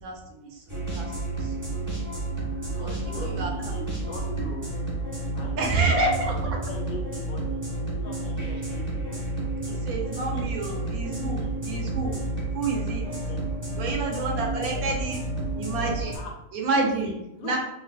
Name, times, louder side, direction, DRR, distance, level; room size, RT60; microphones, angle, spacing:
voice 1, 0.5-1.1 1.4-1.7 2.8-3.7 5.6-6.3 9.7-12.2 12.5-13.0 13.8-15.2 15.6-16.2 16.5-17.1 17.4-17.6, right 3 dB, 75° right, 0 dB, 1.1 m, -28 dB
sound 1, 0.7-16.2, right 2 dB, 15° right, 0.9 m, -31 dB
voice 2, 2.8-4.6 5.4-5.9 6.6-7.6 7.9-9.3 9.9-10.8 13.0-13.6 14.1-14.6 16.1-16.3 16.7-17.6, left 2 dB, 70° left, 0 dB, 1.1 m, -42 dB
3.2 x 2.7 x 2.4 m, 0.88 s
omnidirectional pair, 1.6 m